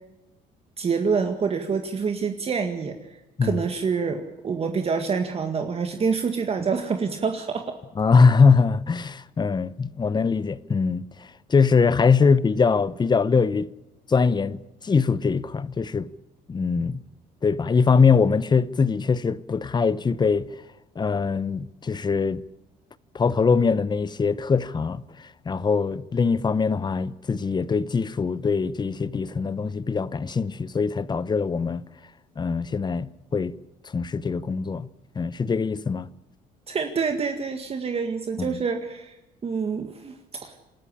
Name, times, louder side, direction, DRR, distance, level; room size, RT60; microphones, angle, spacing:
voice 1, 0.8-3.0 3.4-7.7 36.7-39.1 39.4-40.1 40.4-40.6, right 5 dB, 35° right, 1.9 m, -26 dB
voice 2, 8.0-11.0 11.5-13.7 14.1-14.6 14.8-16.1 16.5-17.0 17.4-20.5 21.0-22.4 23.1-31.8 32.4-33.5 33.9-34.9 35.1-36.1 38.4-38.6, left 5 dB, 25° left, 0.9 m, -22 dB
27.0 x 13.0 x 10.0 m
cardioid pair, 110°, 17 cm